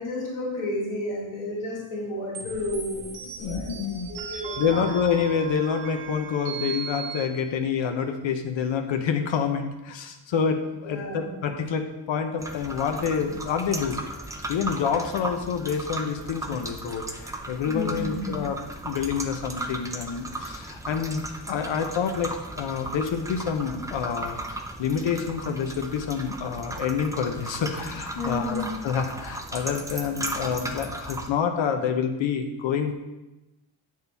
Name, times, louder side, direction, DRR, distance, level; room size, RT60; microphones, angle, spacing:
voice 1, 0.0-4.8 10.8-11.2 17.7-18.3 28.2-28.7, left 1 dB, 90° left, -5 dB, 2.2 m, -32 dB
sound 1, 2.3-7.3, right 6 dB, 85° right, 1.4 m, -37 dB
voice 2, 3.4-14.0 14.5-18.6 18.8-32.9, left 6 dB, 65° left, 6 dB, 0.8 m, -28 dB
sound 2, 12.4-31.3, right 1 dB, 10° right, 0.3 m, -36 dB
8.4 x 6.4 x 3.4 m, 1.0 s
wide cardioid pair, 165°, 49 cm